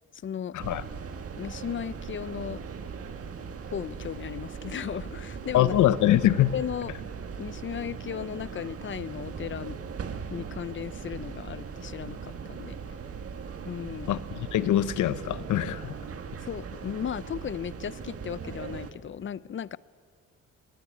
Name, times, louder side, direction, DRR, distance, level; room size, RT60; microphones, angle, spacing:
voice 1, 0.2-0.6 1.4-2.6 3.7-5.7 6.5-6.9 7.4-9.8 10.3-13.0 13.6-14.2 16.4-19.8, left 9 dB, 40° left, 0.6 m, -36 dB
sound 1, 0.6-18.9, right 6 dB, 50° right, 1.7 m, -39 dB
voice 2, 5.5-6.5 14.1-15.9, left 13 dB, 80° left, 0.9 m, -23 dB
20.0 x 19.5 x 8.8 m
cardioid pair, 90°, 30 cm